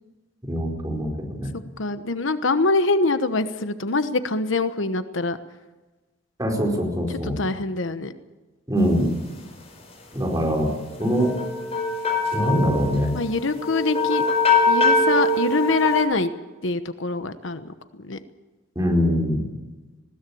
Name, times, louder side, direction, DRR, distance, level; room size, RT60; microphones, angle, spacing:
voice 1, 0.5-1.5 6.4-7.4 8.7-9.1 10.1-10.7 11.0-11.3 12.3-13.1 18.7-19.4, equal, 20° right, 0 dB, 4.7 m, -23 dB
voice 2, 1.8-5.4 7.4-8.1 13.1-14.2 14.7-16.3 16.6-18.2, left 3 dB, 70° left, 10 dB, 1.1 m, -24 dB
sound 1, 11.0-16.0, left 3 dB, 30° left, 4.9 m, -22 dB
20.5 x 17.0 x 8.6 m, 1.2 s
head